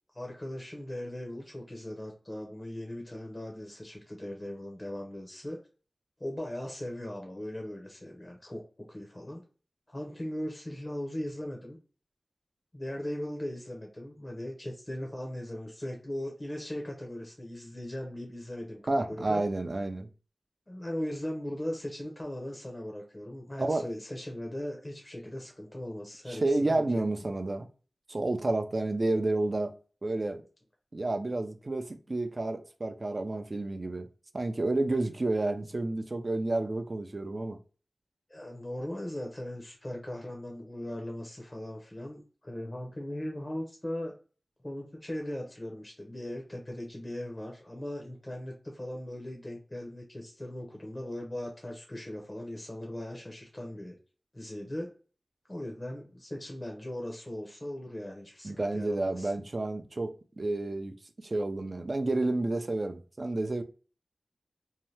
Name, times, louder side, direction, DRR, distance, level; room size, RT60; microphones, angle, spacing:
voice 1, 0.1-5.6 6.2-9.4 9.9-11.8 12.7-19.4 20.7-27.0 38.3-44.1 44.6-54.0 54.3-54.9 55.5-59.3, left 1 dB, 25° left, 0.7 m, -39 dB
voice 2, 18.9-20.1 23.6-23.9 26.3-27.7 28.1-29.7 30.0-30.4 30.9-34.1 34.3-37.6 58.4-60.9 61.2-63.6, right 2 dB, 45° right, 0.4 m, -30 dB
2.7 x 2.1 x 3.1 m
wide cardioid pair, 65°, 0 cm